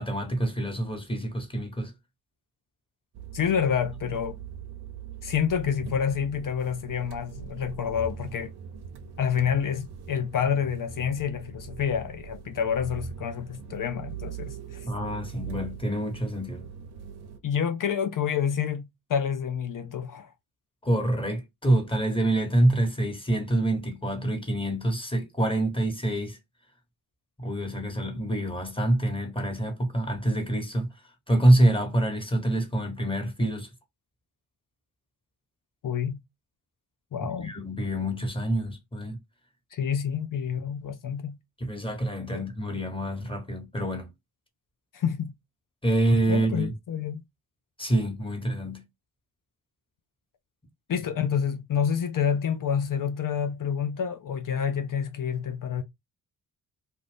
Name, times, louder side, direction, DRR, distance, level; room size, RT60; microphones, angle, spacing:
voice 1, 0.0-1.9 14.9-16.6 20.8-26.4 27.4-30.9 31.3-33.7 37.4-39.2 41.6-44.1 45.8-46.7 47.8-48.8, right 1 dB, 10° left, 1.4 m, -26 dB
sound 1, 3.1-17.4, right 7 dB, 60° right, 0.8 m, -41 dB
voice 2, 3.3-4.4 5.2-8.5 9.2-14.9 17.4-20.3 35.8-36.2 37.1-37.5 39.7-41.4 42.3-42.4 44.9-45.3 46.3-47.2 50.9-55.8, left 7 dB, 45° left, 0.6 m, -28 dB
2.5 x 2.4 x 3.4 m
supercardioid pair, 50°, 45 cm